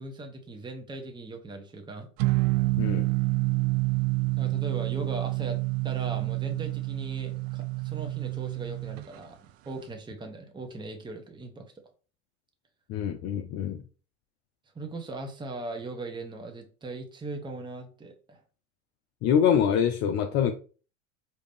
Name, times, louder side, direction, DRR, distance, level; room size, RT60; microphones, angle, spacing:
voice 1, 0.0-2.1 4.4-11.8 14.7-18.4, right 2 dB, 10° right, 4 dB, 0.9 m, -39 dB
sound 1, 2.2-9.1, right 25 dB, 55° right, 0.4 m, -28 dB
voice 2, 12.9-13.8 19.2-20.5, left 8 dB, 45° left, 5 dB, 0.6 m, -25 dB
4.9 x 2.8 x 3.4 m, 0.37 s
hypercardioid pair, 85°, 38 cm